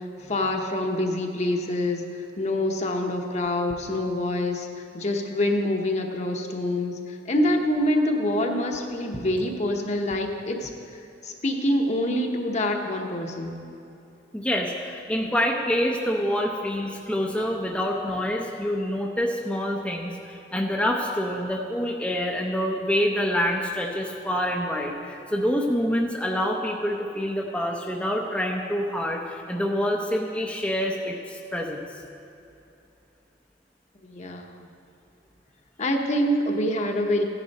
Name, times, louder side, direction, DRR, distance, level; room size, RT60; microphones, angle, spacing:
voice 1, 0.0-13.6 34.0-34.7 35.8-37.2, left 1 dB, 40° left, 2 dB, 1.0 m, -26 dB
voice 2, 14.3-31.8, equal, 5° left, -1 dB, 0.7 m, -26 dB
15.0 x 10.0 x 4.2 m, 2.8 s
head